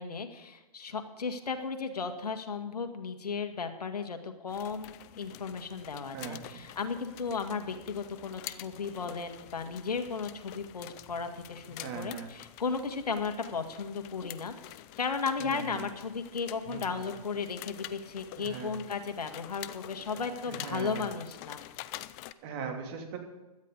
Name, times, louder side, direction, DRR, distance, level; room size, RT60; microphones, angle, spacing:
voice 1, 0.0-21.6, left 5 dB, 85° left, 7 dB, 1.9 m, -35 dB
sound 1, 4.5-22.3, left 16 dB, 25° left, 0.4 m, -47 dB
voice 2, 6.1-6.7 11.8-12.3 15.4-15.9 16.6-17.0 18.3-18.7 20.1-21.1 22.4-23.2, right 6 dB, 40° right, 3 dB, 2.8 m, -40 dB
17.0 x 12.5 x 4.0 m, 1.1 s
hypercardioid pair, 140°, 20 cm